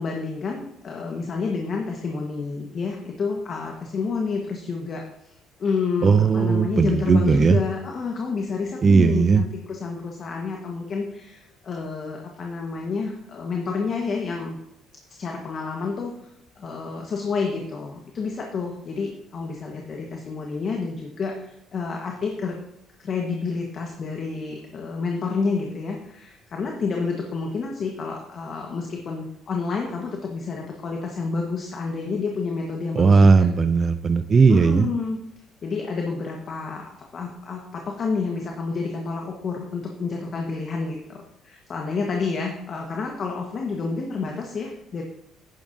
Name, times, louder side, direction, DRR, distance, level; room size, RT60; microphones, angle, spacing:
voice 1, 0.0-14.6 15.1-16.3 16.6-22.6 23.0-33.5 34.5-35.2 35.6-36.8 37.1-45.0, left 4 dB, 50° left, 1 dB, 1.4 m, -29 dB
voice 2, 6.0-7.6 8.8-9.4 33.0-34.9, right 5 dB, 35° right, 9 dB, 0.5 m, -17 dB
10.5 x 9.9 x 2.8 m, 0.84 s
supercardioid pair, 80°, 0 cm